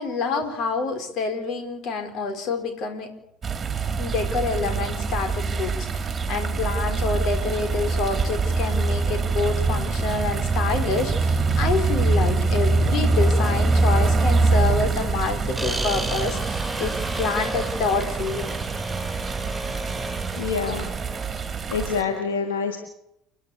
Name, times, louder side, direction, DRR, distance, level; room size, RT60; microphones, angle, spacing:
voice 1, 0.0-3.1 4.0-18.5, left 4 dB, 50° left, 7 dB, 4.3 m, -27 dB
sound 1, 3.4-22.0, right 3 dB, 30° right, 2.5 m, -24 dB
sound 2, 15.6-22.2, right 1 dB, ahead, 6.8 m, -33 dB
voice 2, 20.4-20.9 21.7-22.8, left 5 dB, 75° left, 6 dB, 1.9 m, -26 dB
29.5 x 10.5 x 8.4 m, 0.79 s
figure-of-eight pair, 65°, 0 cm